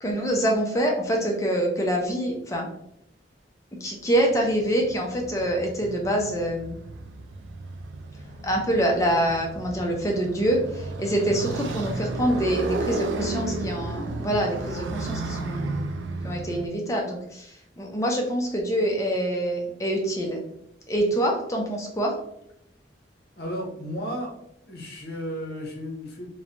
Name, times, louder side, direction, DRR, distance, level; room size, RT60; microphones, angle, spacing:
voice 1, 0.0-2.7 3.7-6.7 8.4-15.9 16.2-20.4 20.9-22.1, right 1 dB, 15° left, 0 dB, 0.4 m, -25 dB
Motorcycle, 4.2-16.7, right 2 dB, 80° right, 0.3 m, -33 dB
voice 2, 23.4-24.4 24.7-26.3, equal, 55° left, 0 dB, 0.8 m, -33 dB
3.0 x 2.1 x 2.5 m, 0.76 s
head